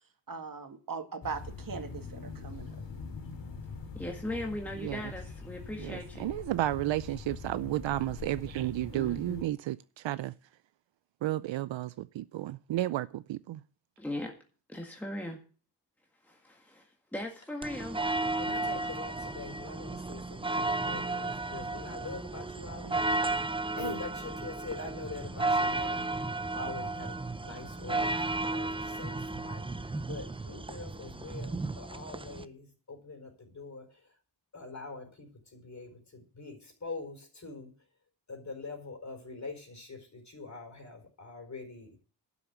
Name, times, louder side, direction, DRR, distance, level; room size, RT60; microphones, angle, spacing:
voice 1, 0.3-2.8, right 5 dB, 50° right, 1.9 m, -40 dB
sound 1, 1.2-9.4, left 4 dB, 80° left, 2.8 m, -43 dB
voice 2, 3.9-6.3 8.9-9.4 14.0-14.3 14.7-15.4 16.2-18.0, left 1 dB, 5° left, 1.9 m, -39 dB
voice 3, 5.8-10.3 11.2-13.6, right 14 dB, 80° right, 0.5 m, -32 dB
sound 2, 17.6-32.4, right 2 dB, 10° right, 0.6 m, -33 dB
voice 4, 18.4-23.0 23.8-26.1 26.5-33.9 34.5-37.7 38.3-42.0, left 3 dB, 40° left, 4.5 m, -44 dB
12.0 x 7.0 x 8.2 m
wide cardioid pair, 135°, 44 cm